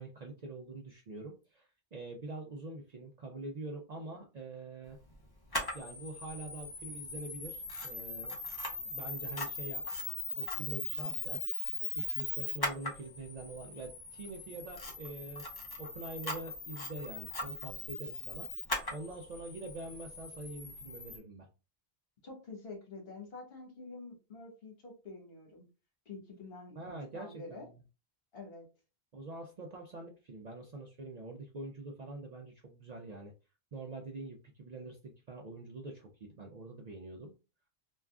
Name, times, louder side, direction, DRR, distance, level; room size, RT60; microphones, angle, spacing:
voice 1, 0.0-5.0 5.7-8.4 8.8-9.8 10.4-11.4 12.0-15.4 15.8-18.5 18.9-21.5 26.8-27.8 29.1-33.3 33.7-37.3, right 2 dB, 55° right, 1 dB, 0.5 m, -45 dB
Camera, 5.5-21.2, left 2 dB, 30° left, 0.5 m, -40 dB
voice 2, 22.2-25.6 26.0-27.7 28.3-28.6, left 3 dB, 65° left, 1 dB, 1.3 m, -48 dB
3.5 x 2.3 x 2.3 m, 0.32 s
omnidirectional pair, 1.1 m